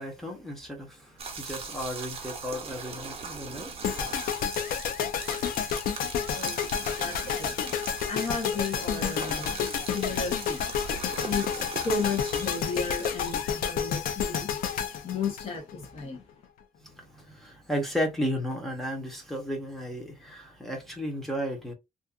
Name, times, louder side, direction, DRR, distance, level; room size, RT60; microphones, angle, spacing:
voice 1, 0.0-3.7 16.8-21.7, equal, ahead, 0.8 m, -34 dB
sound 1, 1.2-13.4, right 5 dB, 45° right, 0.7 m, -40 dB
sound 2, 3.8-16.0, left 8 dB, 85° left, 0.5 m, -30 dB
voice 2, 6.3-6.6 7.0-10.9 11.2-14.5 15.0-16.2, left 4 dB, 45° left, 0.9 m, -34 dB
2.6 x 2.3 x 2.3 m
wide cardioid pair, 165°, 14 cm